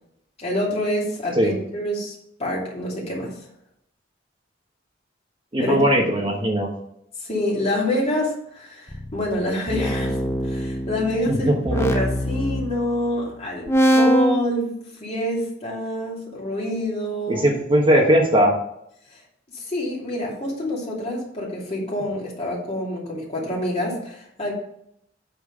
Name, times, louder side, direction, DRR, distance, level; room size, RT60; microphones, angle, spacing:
voice 1, 0.4-2.1 2.4-3.3 5.6-5.8 6.2-6.3 7.2-10.2 10.4-14.7 15.0-17.5 19.1-19.2 19.5-24.5, left 1 dB, 35° left, -3 dB, 2.8 m, -26 dB
voice 2, 5.5-6.7 11.3-11.7 17.3-18.5, equal, 25° right, 0 dB, 1.4 m, -19 dB
sound 1, 8.9-13.3 13.7-14.4, equal, 15° left, 0.7 m, -23 dB
8.6 x 4.5 x 5.5 m, 0.72 s
head